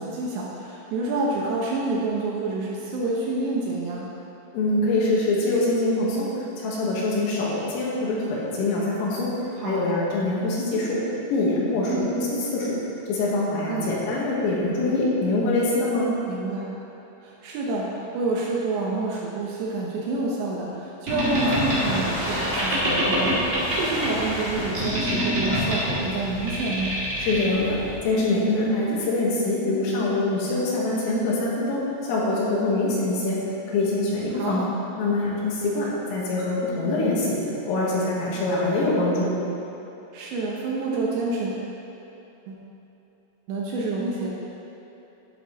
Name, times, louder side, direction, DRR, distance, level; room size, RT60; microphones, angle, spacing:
voice 1, 0.0-4.1 9.6-9.9 11.9-12.1 13.7-14.0 16.3-16.7 17.2-27.0 34.3-34.7 40.1-41.6 42.5-42.6 43.5-44.4, right 3 dB, 75° right, -3 dB, 2.8 m, -28 dB
voice 2, 4.5-6.3 6.6-9.3 9.6-11.0 11.3-12.8 13.1-16.1 27.2-27.8 28.0-33.4 33.7-34.6 35.0-37.4 37.7-39.3, left 2 dB, 80° left, -5 dB, 4.4 m, -24 dB
Boat Water vehicle, 21.1-28.0, equal, 35° right, 1.0 m, -26 dB
11.5 x 9.3 x 4.1 m, 3.0 s
omnidirectional pair, 5.9 m